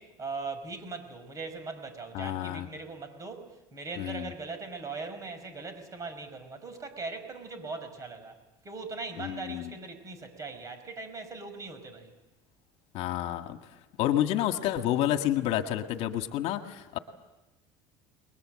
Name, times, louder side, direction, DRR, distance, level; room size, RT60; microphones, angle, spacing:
voice 1, 0.0-8.4 8.6-12.1, right 3 dB, 30° right, 9 dB, 5.3 m, -40 dB
voice 2, 2.1-2.7 4.0-4.3 9.2-9.7 12.9-13.6 14.0-17.0, left 12 dB, 60° left, 6 dB, 1.8 m, -29 dB
30.0 x 21.5 x 7.7 m, 1.0 s
supercardioid pair, 115°, 12 cm